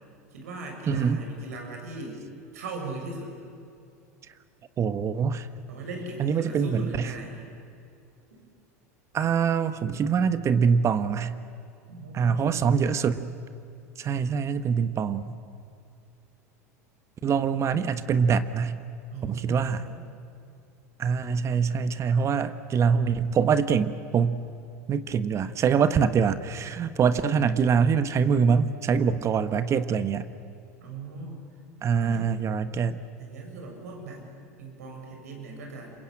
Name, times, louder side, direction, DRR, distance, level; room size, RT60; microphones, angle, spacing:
voice 1, 0.3-2.2 2.5-3.3 5.7-7.5 8.3-8.4 11.9-12.9 19.1-20.0 30.8-31.5 32.0-32.3 33.2-34.3 34.6-35.9, right 3 dB, 75° right, 1 dB, 6.9 m, -39 dB
voice 2, 0.9-1.2 4.8-5.5 6.2-7.1 9.1-11.3 12.1-13.3 14.0-15.3 17.2-18.8 19.3-19.8 21.0-24.5 24.9-30.3 31.8-33.0, right 6 dB, 35° right, 12 dB, 1.2 m, -24 dB
27.0 x 23.5 x 8.9 m, 2.5 s
hypercardioid pair, 85°, 9 cm